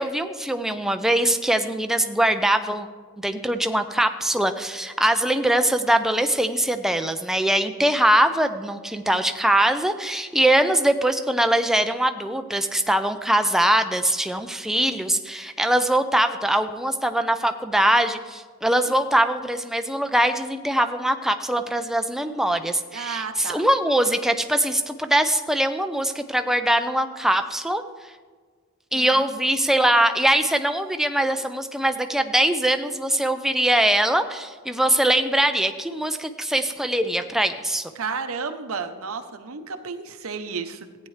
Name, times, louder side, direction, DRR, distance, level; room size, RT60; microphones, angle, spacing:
voice 1, 0.0-2.9 3.2-27.8 28.9-37.9, right 1 dB, ahead, 7 dB, 0.5 m, -22 dB
voice 2, 22.9-23.7 28.9-29.1 38.0-40.9, right 5 dB, 75° right, 8 dB, 0.7 m, -32 dB
15.0 x 9.2 x 3.2 m, 1.5 s
head